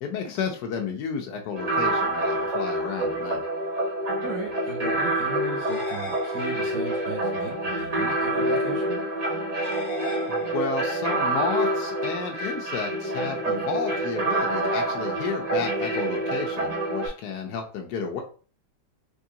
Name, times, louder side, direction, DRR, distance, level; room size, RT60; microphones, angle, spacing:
voice 1, 0.0-3.5 10.3-18.2, left 6 dB, 70° left, 2 dB, 1.0 m, -32 dB
sound 1, 1.6-17.1, right 1 dB, 90° right, 0.3 m, -27 dB
voice 2, 4.2-9.0, right 3 dB, 40° right, -3 dB, 1.3 m, -36 dB
sound 2, 5.6-7.0 9.6-11.0, left 2 dB, 40° left, 0.7 m, -39 dB
3.6 x 3.1 x 2.7 m, 0.38 s
omnidirectional pair, 2.3 m